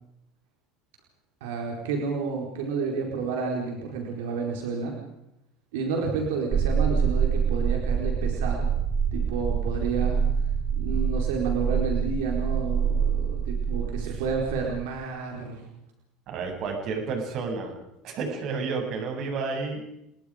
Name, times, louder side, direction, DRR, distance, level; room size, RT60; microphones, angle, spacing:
voice 1, 1.4-5.0 5.7-8.7 9.1-10.2 10.8-15.6, right 5 dB, 90° right, 1 dB, 4.3 m, -30 dB
sound 1, 6.5-15.0, right 7 dB, 35° right, 3.6 m, -26 dB
voice 2, 16.3-17.8 18.0-19.8, right 4 dB, 55° right, 3 dB, 7.8 m, -31 dB
30.0 x 22.5 x 5.1 m, 0.81 s
supercardioid pair, 120°, 0 cm